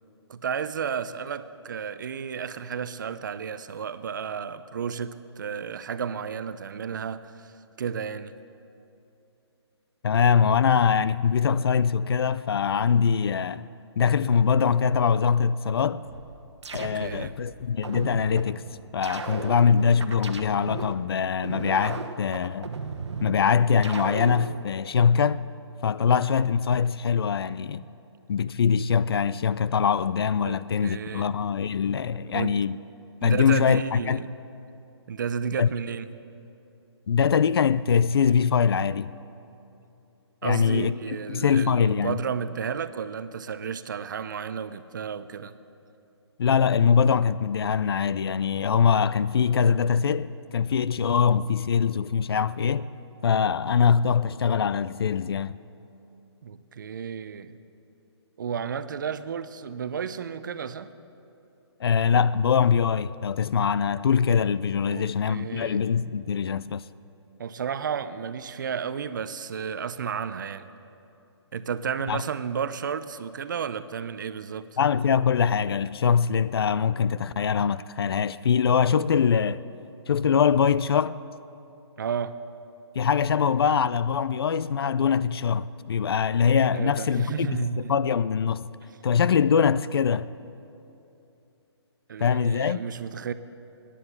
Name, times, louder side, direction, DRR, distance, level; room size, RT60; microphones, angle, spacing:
voice 1, 0.3-8.4 16.7-17.3 30.4-31.3 32.3-32.7 33.2-34.3 35.1-36.1 40.4-45.6 56.4-57.6 58.4-60.9 64.8-65.8 67.4-70.7 71.5-74.7 82.0-82.4 86.7-88.1 92.1-93.3, right 7 dB, 45° right, 0.6 m, -32 dB
voice 2, 10.0-13.7 14.0-16.0 16.7-18.6 18.9-22.7 23.2-25.5 25.8-27.8 28.3-32.8 33.2-34.2 35.6-35.7 37.1-39.1 40.4-40.9 41.3-42.2 46.4-52.9 53.2-55.6 61.8-66.8 72.1-72.2 74.8-79.6 80.1-81.2 83.0-88.7 89.0-90.3 92.2-92.8, left 7 dB, 60° left, 0.4 m, -23 dB
sound 1, 16.0-17.3 17.8-18.5 19.0-20.9 21.4-23.3 23.8-24.5, right 5 dB, 80° right, 1.1 m, -35 dB
15.5 x 10.0 x 7.2 m
hypercardioid pair, 165°, 15 cm